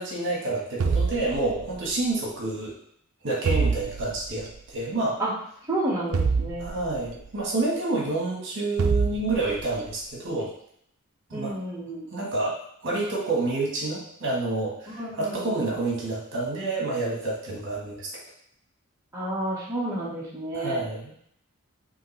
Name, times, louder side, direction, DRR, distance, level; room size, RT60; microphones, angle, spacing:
voice 1, 0.0-2.8 3.2-5.2 6.6-10.5 11.3-11.6 12.1-12.6 12.8-18.1 20.5-21.1, right 2 dB, 60° right, -3 dB, 1.4 m, -28 dB
sound 1, 0.8-1.9 3.4-4.4 6.1-7.2 8.8-9.8, right 5 dB, 80° right, 0.4 m, -26 dB
voice 2, 5.7-6.7 11.3-12.1 14.9-15.6 19.1-20.8, right 1 dB, 15° right, -7 dB, 1.2 m, -30 dB
5.5 x 2.9 x 3.2 m, 0.68 s
head